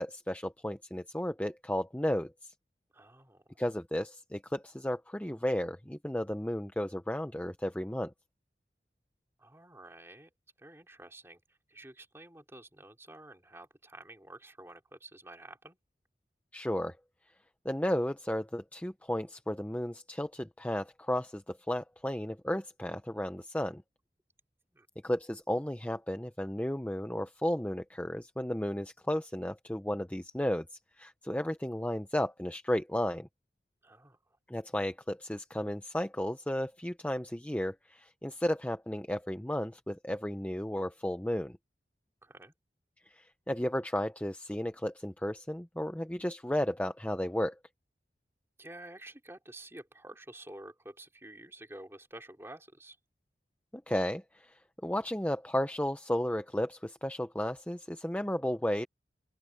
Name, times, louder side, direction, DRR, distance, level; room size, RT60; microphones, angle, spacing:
voice 1, 0.0-2.5 3.6-8.1 16.5-17.0 17.6-23.8 25.0-33.3 34.5-41.6 43.1-47.6 53.9-58.9, left 1 dB, 10° left, 0.6 m, -33 dB
voice 2, 2.9-3.6 9.4-10.3 10.6-15.8 24.7-24.9 33.8-34.4 42.2-42.5 48.6-53.0, right 1 dB, 15° right, 3.2 m, -50 dB
open air
head